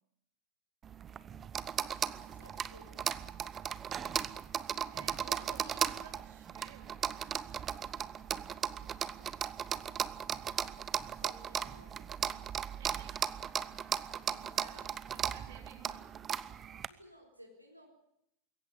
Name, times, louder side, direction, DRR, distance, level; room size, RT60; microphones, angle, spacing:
sound 1, 0.8-16.9, right 8 dB, 25° right, 0.9 m, -37 dB
voice 1, 2.3-3.2 11.2-11.9 14.7-14.8 16.9-17.9, equal, 90° right, 1 dB, 4.2 m, -57 dB
voice 2, 4.8-7.6 11.4-13.2 14.3-16.1, right 8 dB, 55° right, 4 dB, 4.7 m, -55 dB
22.0 x 17.0 x 10.0 m, 0.79 s
figure-of-eight pair, 90°, 0 cm